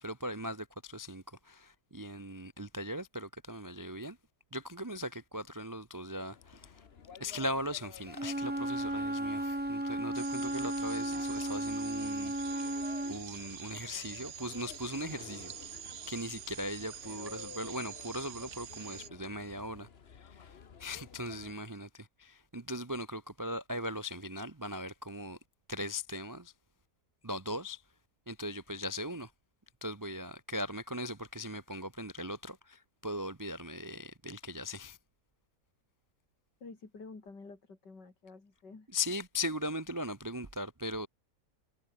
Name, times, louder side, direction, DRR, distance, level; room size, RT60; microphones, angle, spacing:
voice 1, 0.0-4.2 4.5-6.9 7.2-15.8 16.1-25.4 25.7-26.5 27.2-27.9 28.3-29.3 29.8-35.0 38.9-41.1, left 1 dB, 30° right, 0.3 m, -39 dB
sound 1, 6.3-21.5, left 6 dB, 40° left, 1.2 m, -53 dB
Wind instrument woodwind instrument, 8.1-13.2, right 1 dB, 10° right, 0.7 m, -34 dB
sound 2, 10.1-19.1, right 10 dB, 55° right, 1.0 m, -46 dB
voice 2, 36.6-38.9, left 3 dB, 80° left, 4.7 m, -50 dB
omnidirectional pair, 1.8 m